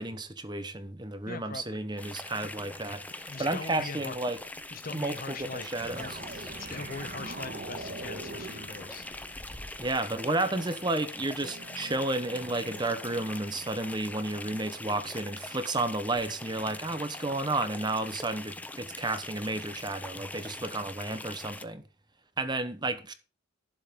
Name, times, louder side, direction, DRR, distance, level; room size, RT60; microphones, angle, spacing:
voice 1, 0.0-4.4 4.9-6.2 9.8-21.8 22.4-23.1, right 2 dB, 20° right, 1.0 m, -32 dB
voice 2, 1.3-1.8 2.2-2.5 3.3-4.2 4.7-6.1 6.6-9.0, left 3 dB, 45° left, 1.1 m, -41 dB
sound 1, 2.0-21.6, left 2 dB, 5° left, 0.6 m, -42 dB
sound 2, 5.8-9.7, right 2 dB, 40° right, 1.6 m, -42 dB
sound 3, 11.4-13.9 15.6-15.7, right 1 dB, 60° right, 1.6 m, -50 dB
12.5 x 7.4 x 5.2 m
head